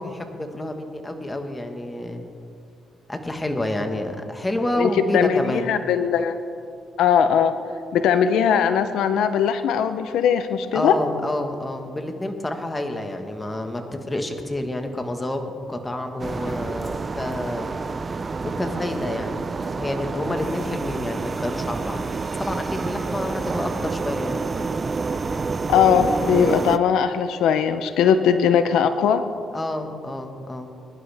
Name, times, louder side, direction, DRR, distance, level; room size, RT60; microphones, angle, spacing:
voice 1, 0.0-2.2 3.1-5.6 10.7-15.4 15.7-17.7 18.4-22.0 22.4-24.5 29.5-30.7, left 1 dB, 15° left, 5 dB, 1.5 m, -29 dB
voice 2, 4.8-6.4 7.0-7.5 7.9-10.9 25.7-29.2, left 8 dB, 85° left, 10 dB, 0.6 m, -20 dB
sound 1, 16.2-26.8, right 4 dB, 35° right, 0.5 m, -28 dB
21.5 x 11.0 x 3.5 m, 2.3 s
cardioid pair, 90°, 0 cm